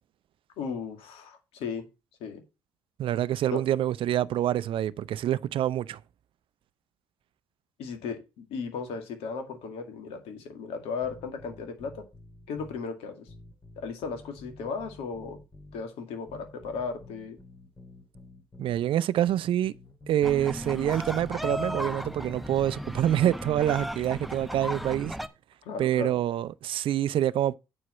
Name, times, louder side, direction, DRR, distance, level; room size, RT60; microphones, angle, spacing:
voice 1, 0.6-1.8 2.2-2.4 3.5-3.6 7.8-12.0 12.5-13.3 13.8-15.4 15.7-17.4 24.6-24.8 25.7-26.2, left 5 dB, 75° left, 2.1 m, -36 dB
voice 2, 3.0-6.0 18.6-19.7 20.1-25.2 25.8-27.5, right 11 dB, 60° right, 0.5 m, -26 dB
sound 1, 11.0-12.8 13.3-15.9 16.3-18.8 19.3-21.8 22.3-22.9, left 2 dB, 30° left, 2.2 m, -49 dB
sound 2, 20.2-25.3, equal, ahead, 0.8 m, -35 dB
8.7 x 4.8 x 5.5 m
hypercardioid pair, 60°, 10 cm